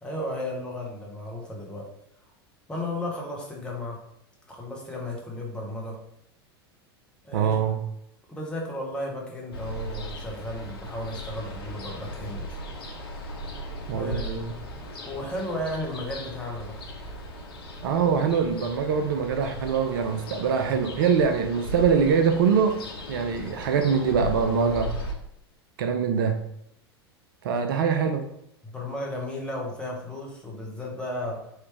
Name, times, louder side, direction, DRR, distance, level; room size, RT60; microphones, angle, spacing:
voice 1, 0.0-1.9 2.7-4.0 4.5-6.0 7.2-7.6 8.3-12.6 13.9-14.3 15.0-16.8 27.5-27.7 28.6-31.5, left 1 dB, 5° left, -2 dB, 0.9 m, -34 dB
voice 2, 7.3-7.8 13.9-14.5 17.8-22.8 23.1-25.0 25.8-26.4 27.4-28.3, right 6 dB, 55° right, 6 dB, 0.4 m, -23 dB
Ocean, 9.5-25.1, equal, 65° left, 0.7 m, -37 dB
3.2 x 2.9 x 3.1 m, 0.75 s
figure-of-eight pair, 85°, 13 cm